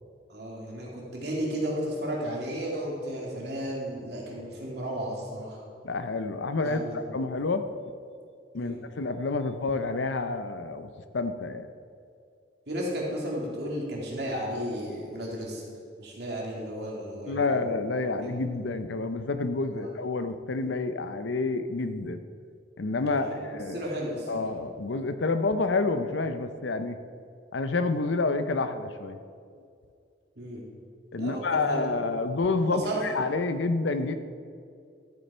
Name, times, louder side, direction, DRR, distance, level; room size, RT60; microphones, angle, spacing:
voice 1, 0.3-5.6 6.6-7.2 8.5-8.8 12.7-15.6 16.0-17.7 18.1-18.4 19.7-19.9 23.1-24.4 30.4-30.6 31.2-31.9 32.6-33.1, equal, 60° right, -3 dB, 2.7 m, -34 dB
voice 2, 5.8-7.7 8.5-11.7 17.3-22.2 22.8-23.8 24.3-27.0 27.5-29.2 31.1-34.1, left 3 dB, 85° left, 10 dB, 0.7 m, -29 dB
13.5 x 8.4 x 4.3 m, 2.3 s
head